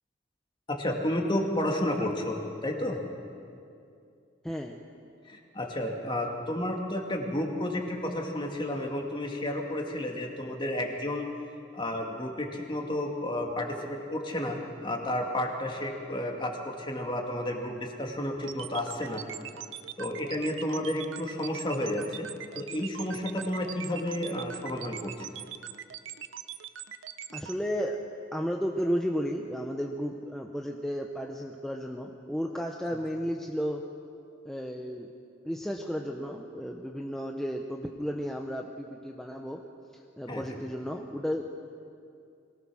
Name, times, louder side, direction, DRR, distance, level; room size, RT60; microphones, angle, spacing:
voice 1, 0.7-3.0 5.3-11.3 11.7-19.2 20.0-22.3 22.5-25.3 32.9-33.0 40.3-40.6, left 1 dB, 25° left, 1 dB, 2.2 m, -31 dB
voice 2, 4.4-4.8 27.3-28.0 28.3-33.8 34.4-35.1 35.4-39.6 40.2-41.4, equal, ahead, 1 dB, 0.9 m, -33 dB
sound 1, 18.4-27.5, right 10 dB, 80° right, 0.8 m, -41 dB
22.5 x 18.0 x 6.3 m, 2.5 s
head